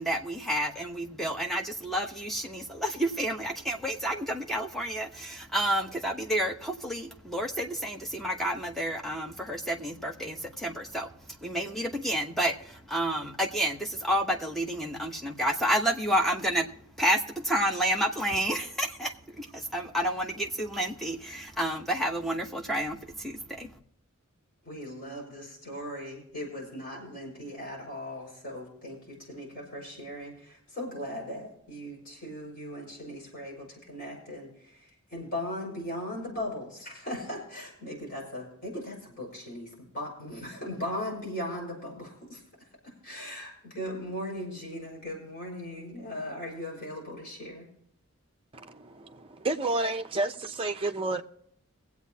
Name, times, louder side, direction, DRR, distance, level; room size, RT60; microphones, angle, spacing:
voice 1, 0.0-16.7 17.0-23.7, right 1 dB, ahead, 0.9 m, -30 dB
voice 2, 24.6-42.4 42.8-47.7, left 1 dB, 40° left, 5.0 m, -38 dB
voice 3, 48.5-51.2, right 2 dB, 25° right, 0.7 m, -31 dB
22.5 x 8.3 x 2.8 m
head